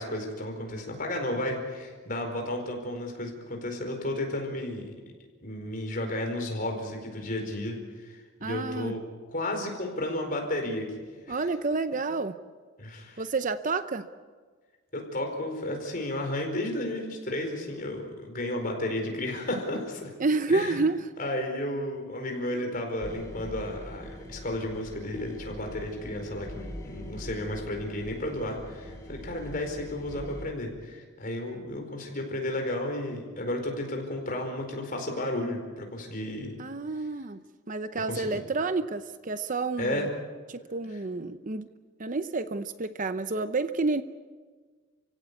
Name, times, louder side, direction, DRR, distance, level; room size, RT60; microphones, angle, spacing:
voice 1, 0.0-4.9 5.4-9.0 9.3-11.4 12.8-13.2 14.9-20.1 20.5-20.8 21.2-36.6 38.1-38.4 39.8-40.1, left 1 dB, 40° left, 2 dB, 4.7 m, -33 dB
voice 2, 8.4-8.9 11.3-12.3 13.2-14.0 20.2-21.1 36.6-37.4 37.7-40.1 40.5-41.7 42.0-44.0, right 3 dB, 35° right, 11 dB, 0.7 m, -29 dB
sound 1, 23.0-30.4, equal, 15° left, 2.9 m, -42 dB
29.5 x 16.5 x 8.3 m, 1.5 s
head